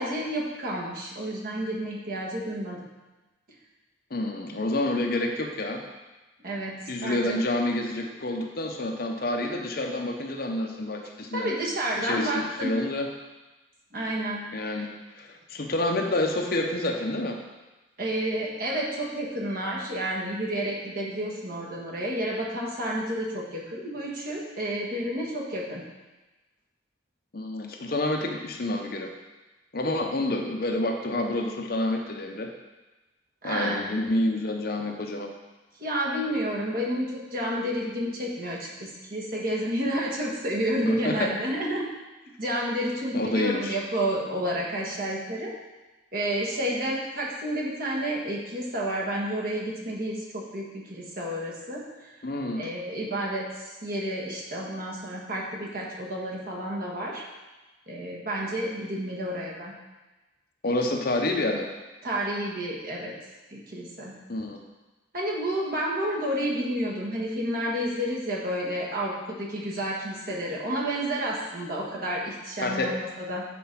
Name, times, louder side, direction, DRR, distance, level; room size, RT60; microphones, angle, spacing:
voice 1, 0.0-2.8 6.4-6.7 7.0-7.4 11.3-12.7 13.9-14.4 14.8-14.9 18.0-25.8 33.4-33.8 35.8-41.9 42.4-45.5 46.1-52.1 52.6-57.2 57.9-59.7 62.0-63.1 63.5-64.1 65.1-73.4, right 1 dB, 45° right, -3 dB, 1.5 m, -30 dB
voice 2, 4.1-5.8 6.9-11.5 12.0-13.1 14.5-14.9 15.1-17.4 27.3-29.1 29.7-32.5 33.4-35.3 40.8-41.4 43.1-43.8 52.2-52.7 60.6-61.7 64.3-64.6 72.6-72.9, left 1 dB, 50° left, 3 dB, 0.8 m, -28 dB
7.6 x 4.6 x 5.8 m, 1.1 s
head